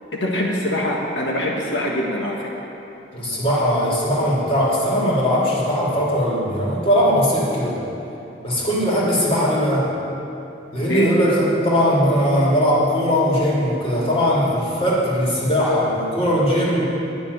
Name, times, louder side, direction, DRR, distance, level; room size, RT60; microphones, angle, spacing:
voice 1, 0.1-2.5 10.8-11.1, equal, 85° left, -2 dB, 1.5 m, -23 dB
voice 2, 3.1-7.8 8.4-9.9 10.7-16.8, equal, 30° left, -6 dB, 3.1 m, -19 dB
11.5 x 7.0 x 9.7 m, 2.8 s
head